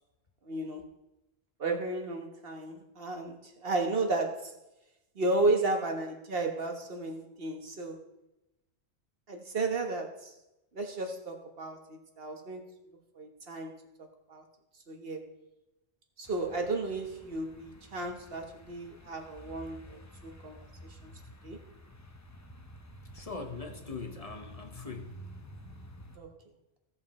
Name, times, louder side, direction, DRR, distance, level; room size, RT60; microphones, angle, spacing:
voice 1, 0.4-0.8 1.6-4.6 5.1-8.0 9.3-10.3 10.7-12.6 13.1-14.4 14.9-15.4 16.2-21.1 21.4-21.6 26.2-26.3, right 2 dB, 55° right, 4 dB, 1.6 m, -33 dB
sound 1, 16.3-26.2, equal, 15° left, 0.7 m, -51 dB
voice 2, 23.1-25.1, left 4 dB, 35° left, 4 dB, 1.1 m, -41 dB
16.5 x 5.6 x 4.3 m, 0.94 s
omnidirectional pair, 1.2 m